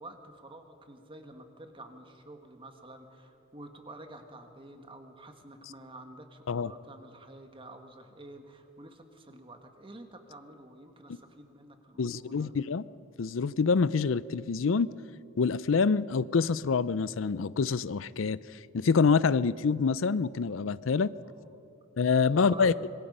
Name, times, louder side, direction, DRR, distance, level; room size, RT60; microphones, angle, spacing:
voice 1, 0.0-12.5 21.2-21.6 22.3-22.9, right 1 dB, 25° right, 5 dB, 1.7 m, -49 dB
voice 2, 12.0-12.9 13.2-14.9 15.4-18.4 18.7-21.1 22.0-22.7, left 5 dB, 85° left, 18 dB, 0.5 m, -26 dB
25.5 x 22.0 x 5.5 m, 2.6 s
head